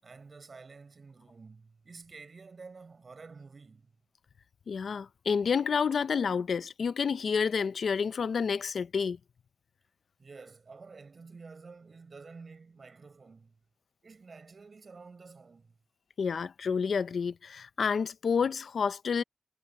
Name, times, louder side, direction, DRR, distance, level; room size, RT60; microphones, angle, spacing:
voice 1, 0.0-3.9 10.2-13.5 14.0-15.7, right 4 dB, 65° right, 6.9 m, -50 dB
voice 2, 4.7-9.2 16.2-19.2, left 6 dB, 85° left, 0.5 m, -29 dB
cardioid pair, 55°, 0 cm